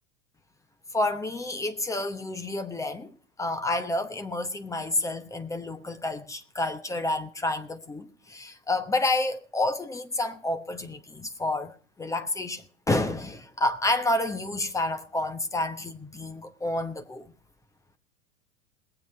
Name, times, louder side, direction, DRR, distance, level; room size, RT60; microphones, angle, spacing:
voice 1, 0.9-3.1 3.4-17.3, left 2 dB, 10° left, 1.0 m, -29 dB
21.0 x 7.8 x 4.5 m
figure-of-eight pair, 90°, 37 cm